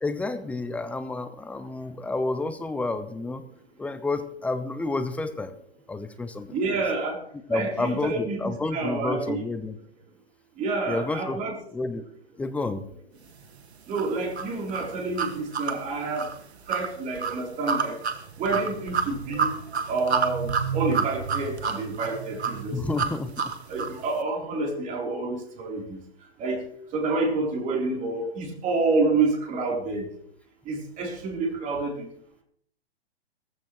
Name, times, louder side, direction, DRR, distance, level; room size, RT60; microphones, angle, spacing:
voice 1, 0.0-3.4 3.8-5.5 5.9-6.6 7.5-9.8 10.9-11.4 11.7-12.0 12.4-12.8 22.7-23.5, left 3 dB, 5° left, 10 dB, 0.6 m, -30 dB
voice 2, 6.5-7.2 7.5-9.4 10.6-11.6 13.9-16.3 16.7-18.0 18.4-19.6 19.9-22.8 23.7-26.0 26.4-26.6 26.9-30.1 30.7-32.1, right 3 dB, 25° right, 1 dB, 3.6 m, -28 dB
sound 1, 13.9-24.0, right 6 dB, 80° right, 1.8 m, -29 dB
18.0 x 15.0 x 3.1 m, 0.67 s
hypercardioid pair, 135°, 32 cm